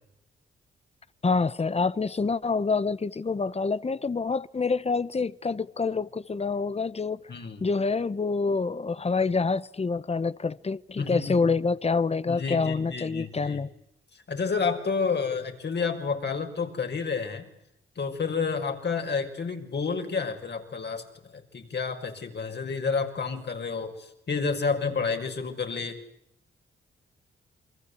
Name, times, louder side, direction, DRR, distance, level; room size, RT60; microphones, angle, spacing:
voice 1, 1.2-7.2 7.6-13.7, left 4 dB, 30° left, 1.1 m, -27 dB
voice 2, 7.3-7.6 11.0-11.5 12.3-13.6 14.1-17.5 18.0-21.0 21.3-26.0, left 5 dB, 55° left, 5.9 m, -30 dB
29.5 x 24.0 x 8.4 m
cardioid pair, 70°, 21 cm